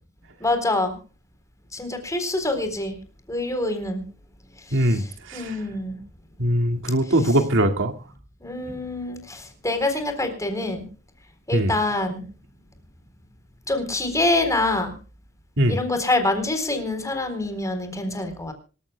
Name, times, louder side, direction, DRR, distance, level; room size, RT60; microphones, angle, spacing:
voice 1, 0.4-1.0 1.7-3.0 3.3-4.0 4.7-5.0 5.3-6.0 8.4-10.9 11.5-12.2 13.7-14.9 15.7-18.5, left 2 dB, 15° left, 7 dB, 3.9 m, -25 dB
voice 2, 4.7-5.6 6.4-7.9 11.5-11.7 15.6-15.8, right 1 dB, 60° right, 6 dB, 2.1 m, -21 dB
26.0 x 14.0 x 2.2 m, 0.35 s
head